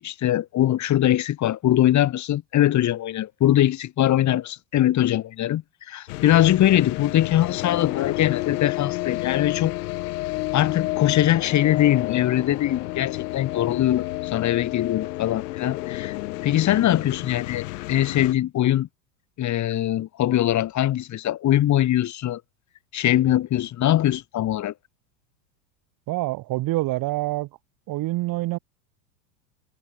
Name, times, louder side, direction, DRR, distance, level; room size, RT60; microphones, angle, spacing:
voice 1, 0.0-9.7 10.5-16.2 16.4-18.9 19.4-22.4 22.9-24.7, left 13 dB, 35° left, 6.1 m, -22 dB
sound 1, 6.1-18.3, left 20 dB, 65° left, 4.5 m, -30 dB
voice 2, 26.1-27.5 27.9-28.6, right 18 dB, 45° right, 4.3 m, -26 dB
hypercardioid pair, 120°, 49 cm